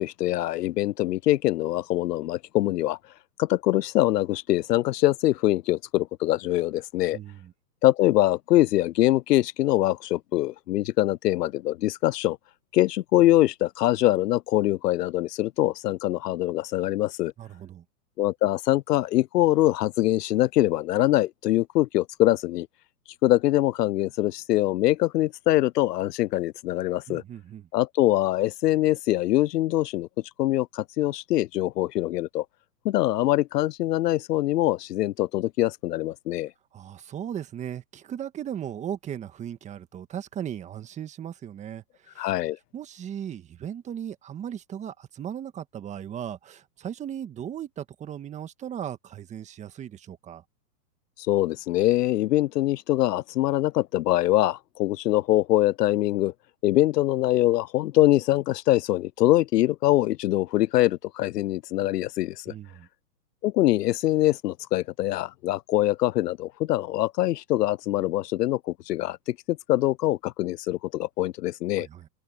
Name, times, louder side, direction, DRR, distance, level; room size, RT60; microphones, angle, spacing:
voice 1, 0.0-3.0 3.4-7.2 7.8-12.4 12.7-17.3 18.2-22.7 23.2-27.2 27.7-30.1 30.4-32.4 32.8-36.5 42.2-42.6 51.2-56.3 56.6-62.5 63.4-71.9, left 15 dB, 75° left, 0.5 m, -23 dB
voice 2, 7.1-7.5 17.4-17.8 27.1-27.7 36.7-42.3 42.7-50.4 62.5-62.9 71.7-72.1, right 9 dB, 15° right, 1.5 m, -37 dB
hypercardioid pair, 145°, 48 cm